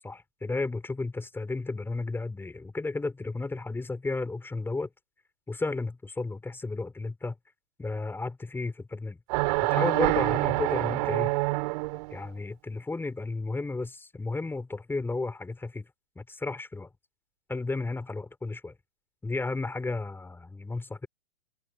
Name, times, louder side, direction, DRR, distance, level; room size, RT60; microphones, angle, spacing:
voice 1, 0.0-4.9 5.5-7.3 7.8-9.2 9.6-11.3 12.1-15.9 16.1-16.9 17.5-18.7 19.2-21.1, left 3 dB, 5° left, 5.2 m, -33 dB
sound 1, 9.3-12.2, right 25 dB, 45° right, 4.1 m, -26 dB
open air
figure-of-eight pair, 115°, 30 cm